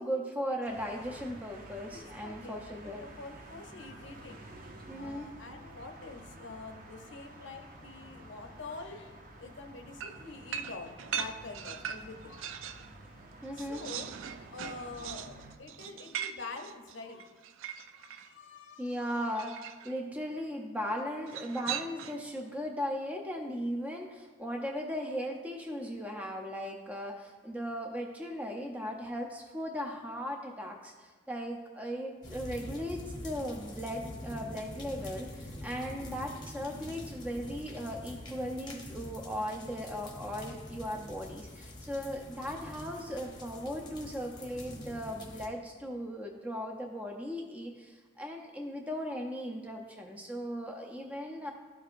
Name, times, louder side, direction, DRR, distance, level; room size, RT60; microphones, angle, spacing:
voice 1, 0.0-3.0 4.9-5.3 13.4-13.8 18.8-19.6 19.8-51.5, equal, 5° right, 1 dB, 0.5 m, -37 dB
sound 1, 0.6-15.6, right 1 dB, 45° right, 0.7 m, -51 dB
voice 2, 1.9-4.5 5.0-12.7 13.3-14.1 14.5-17.4 17.9-19.3, left 3 dB, 65° left, 5 dB, 0.7 m, -46 dB
sound 2, 10.0-12.9 13.3-18.3 19.4-20.0 21.3-22.3, right 8 dB, 75° right, 0.3 m, -40 dB
sound 3, 32.2-45.5, left 1 dB, 20° left, 0.8 m, -45 dB
12.5 x 4.6 x 2.5 m, 1.5 s
head